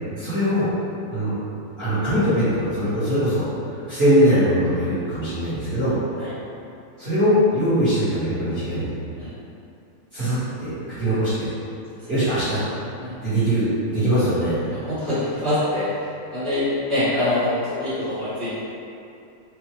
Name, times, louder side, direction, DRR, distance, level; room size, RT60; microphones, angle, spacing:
voice 1, 0.2-0.7 1.1-1.4 1.8-3.4 3.7-6.0 7.0-8.9 10.1-11.5 12.1-12.6 13.2-14.5, equal, 30° right, -15 dB, 1.4 m, -21 dB
voice 2, 14.8-18.6, left 1 dB, 30° left, -15 dB, 1.1 m, -24 dB
4.8 x 2.4 x 3.1 m, 2.7 s
omnidirectional pair, 2.4 m